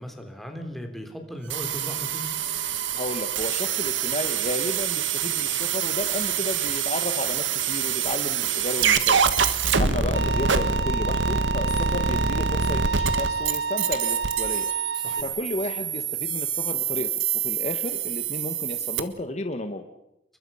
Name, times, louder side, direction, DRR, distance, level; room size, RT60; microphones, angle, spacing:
voice 1, 0.0-2.4 9.8-10.0 15.0-15.4, equal, ahead, 3 dB, 3.5 m, -37 dB
sound 1, 1.5-19.0, right 6 dB, 80° right, 1.7 m, -26 dB
voice 2, 2.9-9.2 9.8-14.7 15.2-19.8, left 2 dB, 35° left, 7 dB, 1.4 m, -32 dB
Bowed string instrument, 10.1-15.2, right 5 dB, 60° right, 1.0 m, -29 dB
29.0 x 23.0 x 5.7 m, 0.85 s
head